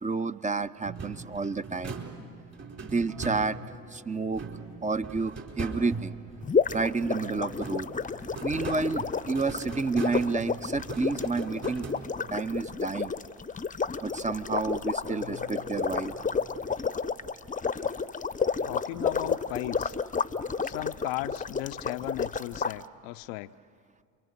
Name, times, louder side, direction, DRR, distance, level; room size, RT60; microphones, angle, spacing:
voice 1, 0.0-2.0 2.8-3.6 3.9-4.4 4.8-6.2 6.7-7.9 8.4-11.9 12.3-13.1 14.0-16.1, right 4 dB, 20° right, 12 dB, 0.7 m, -30 dB
sound 1, 0.8-3.9 4.3-7.2 7.5-12.4, right 4 dB, 40° right, 4.1 m, -40 dB
sound 2, 3.1-5.1 7.1-8.9 11.1-12.9 15.1-17.3, left 2 dB, 80° right, 6.4 m, -50 dB
sound 3, 6.4-22.7, left 5 dB, 20° left, 0.8 m, -31 dB
voice 2, 18.7-19.9 20.6-23.6, left 17 dB, 70° left, 14 dB, 0.6 m, -36 dB
29.5 x 23.5 x 6.7 m, 2.5 s
hypercardioid pair, 50°, 40 cm